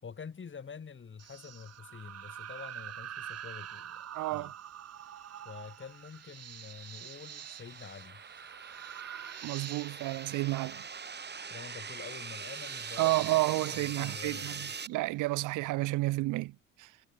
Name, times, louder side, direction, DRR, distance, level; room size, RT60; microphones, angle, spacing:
voice 1, 0.0-4.5 5.4-8.2 11.5-14.7, left 6 dB, 40° left, 3.7 m, -47 dB
sound 1, 1.2-15.1, right 10 dB, 55° right, 1.3 m, -46 dB
sound 2, 3.4-3.5 4.4-4.5 5.4-5.5 6.4-6.5 7.4-7.5 8.4-8.5 9.4-9.5 10.4-10.6 11.4-11.6 12.4-12.6 13.4-13.6, right 2 dB, 15° right, 6.3 m, -67 dB
voice 2, 4.1-4.5 9.4-10.8 13.0-16.9, right 20 dB, 90° right, 0.6 m, -31 dB
sound 3, 5.9-14.9, right 5 dB, 35° right, 2.3 m, -43 dB
cardioid pair, 90°, 30 cm